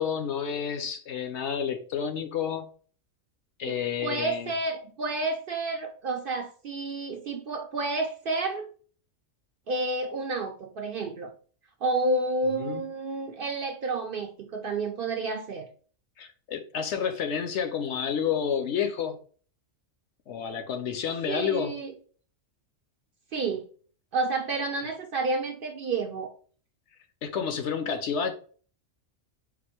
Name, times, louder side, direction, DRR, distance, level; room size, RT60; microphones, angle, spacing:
voice 1, 0.0-2.7 3.6-4.5 12.6-12.8 16.2-19.2 20.3-21.7 27.2-28.3, left 7 dB, 70° left, 0.9 m, -30 dB
voice 2, 3.7-8.7 9.7-11.3 11.8-15.7 21.3-21.9 23.3-23.6 24.1-26.3, right 2 dB, 60° right, 0.6 m, -30 dB
4.2 x 2.5 x 4.4 m
omnidirectional pair, 1.3 m